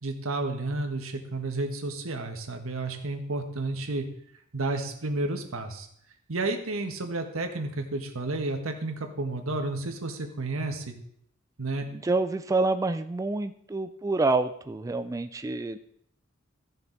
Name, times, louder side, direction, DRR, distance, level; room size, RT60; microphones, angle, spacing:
voice 1, 0.0-4.1 4.5-5.9 6.3-10.9 11.6-11.9, right 2 dB, 85° right, 4 dB, 1.4 m, -31 dB
voice 2, 11.9-15.8, right 3 dB, 15° right, 9 dB, 0.3 m, -27 dB
14.5 x 6.9 x 4.0 m, 0.69 s
head